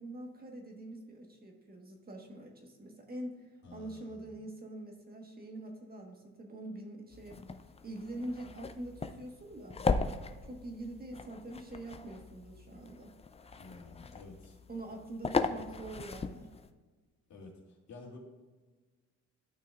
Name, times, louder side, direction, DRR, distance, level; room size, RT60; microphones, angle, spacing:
voice 1, 0.0-7.4 7.8-9.8 10.4-13.1 14.7-16.5, right 1 dB, 30° right, 2 dB, 1.4 m, -44 dB
voice 2, 3.6-4.3 13.6-14.5 15.3-15.6 17.3-18.2, left 3 dB, 65° left, -2 dB, 2.5 m, -51 dB
sound 1, 7.1-16.7, left 4 dB, 20° left, 0.5 m, -38 dB
12.5 x 5.8 x 2.5 m, 1.3 s
cardioid pair, 90°, 30 cm